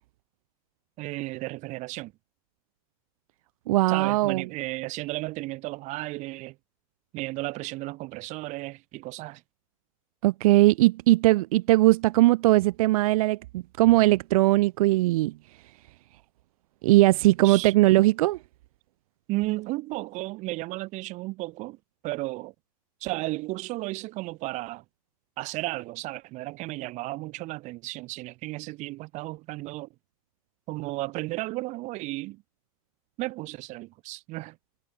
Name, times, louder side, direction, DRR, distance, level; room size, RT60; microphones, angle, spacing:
voice 1, 1.0-2.1 3.9-6.6 7.1-9.4 17.4-17.7 19.3-21.8 22.0-22.5 23.0-24.8 25.4-29.9 30.7-32.4 33.2-34.6, right 20 dB, 40° right, 1.5 m, -34 dB
voice 2, 3.7-4.4 10.2-15.3 16.8-18.4, right 18 dB, 75° right, 0.7 m, -20 dB
supercardioid pair, 145°, 18 cm